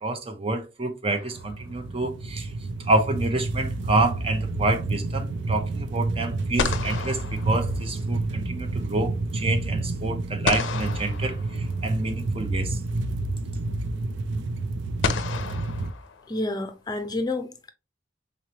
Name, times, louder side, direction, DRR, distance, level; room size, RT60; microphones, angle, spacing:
voice 1, 0.0-2.5 2.9-12.8, right 2 dB, 30° right, 0.5 m, -28 dB
sound 1, 1.1-2.0 6.0-6.1 6.6-8.3 10.5-12.0 13.4-13.5 15.0-16.7, left 5 dB, 90° left, 0.5 m, -32 dB
sound 2, 1.3-15.9, right 2 dB, 80° right, 0.4 m, -29 dB
voice 2, 16.3-17.7, left 2 dB, 20° left, 0.5 m, -29 dB
4.1 x 3.2 x 2.8 m
head